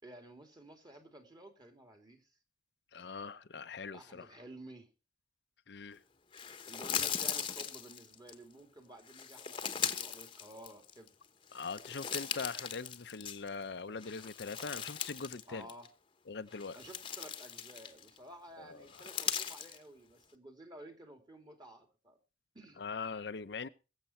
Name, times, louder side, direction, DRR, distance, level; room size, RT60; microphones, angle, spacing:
voice 1, 0.0-2.3 3.9-4.9 6.7-11.1 15.5-15.9 16.7-22.2 22.5-22.8, right 1 dB, 25° right, 2.6 m, -53 dB
voice 2, 2.9-4.3 5.7-6.0 11.5-15.7 16.3-16.8 18.6-18.9 22.8-23.7, left 4 dB, 70° left, 0.6 m, -42 dB
sound 1, 6.3-8.3 9.1-11.1 11.5-13.6 14.0-15.4 15.7-15.9 16.5-18.2 18.9-19.8, left 8 dB, 30° left, 1.0 m, -39 dB
22.0 x 7.5 x 4.3 m
head